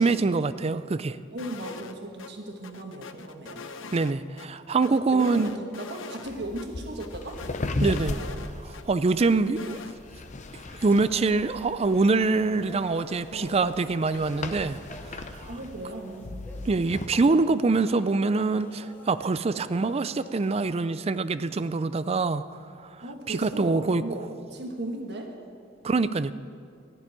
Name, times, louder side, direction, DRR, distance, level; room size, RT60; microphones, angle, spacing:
voice 1, 0.0-1.2 3.9-5.5 7.8-8.2 8.7-9.8 10.8-14.8 15.1-15.5 16.7-22.4 22.8-22.9 23.3-24.0 25.8-26.3, right 3 dB, 30° right, 13 dB, 0.4 m, -24 dB
voice 2, 1.3-3.6 4.9-7.4 7.8-8.5 13.3-13.6 15.5-16.3 23.0-25.3, right 1 dB, 60° right, 2 dB, 1.4 m, -37 dB
sound 1, 1.4-1.9 2.2-2.3 2.6-4.5 4.8-6.3 6.6-6.7 7.0-8.8 9.2-9.9, left 5 dB, 75° left, 0.7 m, -42 dB
sound 2, 6.2-17.1, left 2 dB, 40° left, 0.7 m, -37 dB
sound 3, 10.8-20.6, equal, 10° left, 1.2 m, -48 dB
13.5 x 6.9 x 9.8 m, 2.3 s
head